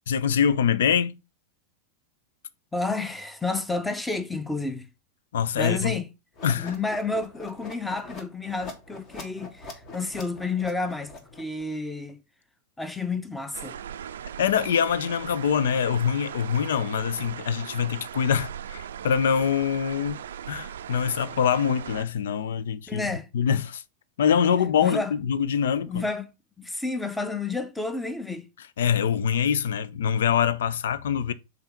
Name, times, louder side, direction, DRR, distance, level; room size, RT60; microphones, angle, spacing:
voice 1, 0.1-1.2 5.3-6.0 6.4-6.7 14.4-20.2 20.5-23.1 23.3-23.8 24.2-26.0 28.8-31.3, left 8 dB, 60° left, 0.5 m, -24 dB
voice 2, 2.7-4.9 5.6-6.1 6.6-12.2 12.8-13.8 22.9-23.3 24.8-25.1 25.8-26.3 26.6-28.5, left 3 dB, 5° left, 0.8 m, -30 dB
sound 1, 6.3-11.6, left 3 dB, 35° left, 1.7 m, -43 dB
sound 2, 13.5-22.0, right 9 dB, 60° right, 0.4 m, -39 dB
5.6 x 3.9 x 5.7 m
figure-of-eight pair, 90°, 0 cm